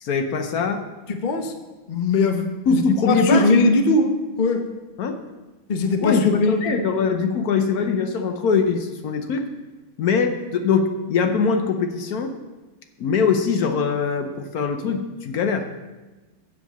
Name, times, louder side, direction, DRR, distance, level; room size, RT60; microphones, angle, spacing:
voice 1, 0.0-0.8 2.7-3.5 5.0-5.2 6.0-9.5 10.0-12.3 13.0-15.7, left 5 dB, 60° left, 6 dB, 1.0 m, -22 dB
voice 2, 1.1-1.5 1.9-2.8 3.1-4.1 4.4-4.6 5.7-6.7, left 3 dB, 80° left, 5 dB, 0.4 m, -20 dB
7.7 x 7.7 x 6.7 m, 1.2 s
omnidirectional pair, 2.2 m